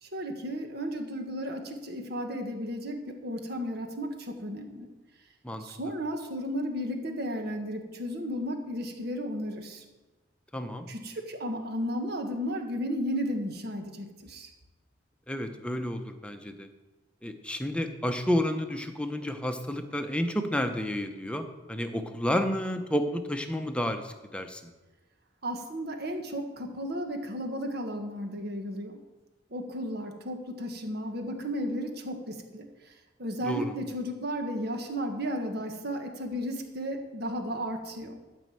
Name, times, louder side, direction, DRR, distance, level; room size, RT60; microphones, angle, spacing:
voice 1, 0.0-4.9 5.6-9.8 10.9-14.5 25.4-29.0 29.5-32.9 33.2-38.2, equal, 55° right, 4 dB, 1.5 m, -34 dB
voice 2, 10.5-10.9 15.3-16.7 17.2-24.6 33.4-33.7, left 1 dB, 5° left, 6 dB, 0.8 m, -31 dB
12.5 x 5.5 x 7.7 m, 1.2 s
head